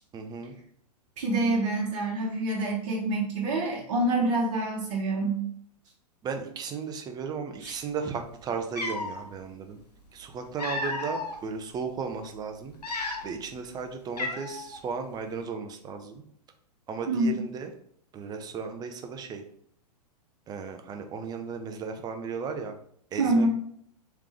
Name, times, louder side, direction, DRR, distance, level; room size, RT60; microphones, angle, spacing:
voice 1, 0.1-0.5 6.2-9.8 10.1-13.0 13.2-16.2 16.9-17.7 18.1-19.4 20.5-22.8 23.1-23.5, right 5 dB, 20° right, 5 dB, 0.6 m, -35 dB
voice 2, 1.2-5.4 7.6-7.7 17.1-17.4 23.2-23.5, right 2 dB, 50° right, -3 dB, 1.2 m, -26 dB
Cat, 8.2-8.3 8.7-9.2 10.2-11.4 11.9-12.1 12.7-13.5 13.7-13.8 14.2-14.8, left 2 dB, 80° left, 1.0 m, -33 dB
3.7 x 3.3 x 3.2 m, 0.65 s
figure-of-eight pair, 105°, 20 cm